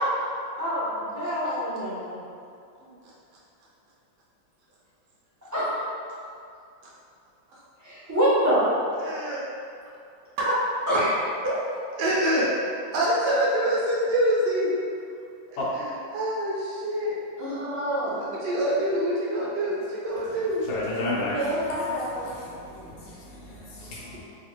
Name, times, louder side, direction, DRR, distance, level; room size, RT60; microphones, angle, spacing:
voice 1, 0.6-2.2 5.5-5.6 7.8-8.6 10.9-11.1 11.4-11.6 17.4-18.3 21.1-22.3, equal, 20° right, -14 dB, 0.5 m, -26 dB
voice 2, 9.0-9.4 10.4-10.6 12.0-12.5 12.9-14.7 15.5-17.2 18.0-20.7, right 1 dB, 70° right, -6 dB, 1.1 m, -26 dB
voice 3, 20.7-21.4 22.2-24.2, left 2 dB, 85° left, -7 dB, 1.5 m, -33 dB
3.5 x 2.4 x 2.9 m, 2.4 s
omnidirectional pair, 2.1 m